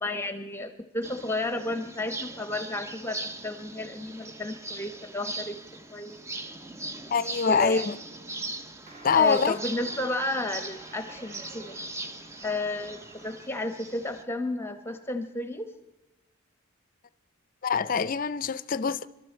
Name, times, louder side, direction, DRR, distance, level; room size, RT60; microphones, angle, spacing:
voice 1, 0.0-5.6 5.9-6.2 7.5-7.9 9.1-11.8 12.4-15.7, left 2 dB, 10° left, 0.9 m, -32 dB
sound 1, 1.0-14.2, right 2 dB, 15° right, 0.6 m, -40 dB
voice 2, 7.1-8.0 9.0-9.6 17.6-19.1, left 5 dB, 40° left, 0.5 m, -24 dB
sound 2, 8.9-13.7, right 2 dB, 35° right, 2.2 m, -51 dB
25.5 x 12.5 x 4.4 m
head